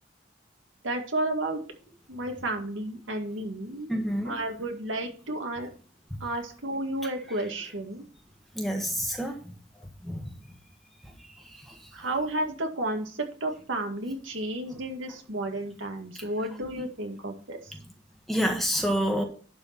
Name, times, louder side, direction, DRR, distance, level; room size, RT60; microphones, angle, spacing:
voice 1, 0.8-1.6 2.1-3.9 4.2-5.7 6.2-8.1 11.9-17.6, right 1 dB, 85° right, 3 dB, 2.0 m, -32 dB
voice 2, 3.9-4.3 8.5-9.3 10.0-10.3 16.2-16.3 18.3-19.2, equal, ahead, 2 dB, 1.6 m, -27 dB
11.5 x 4.6 x 5.8 m, 0.40 s
head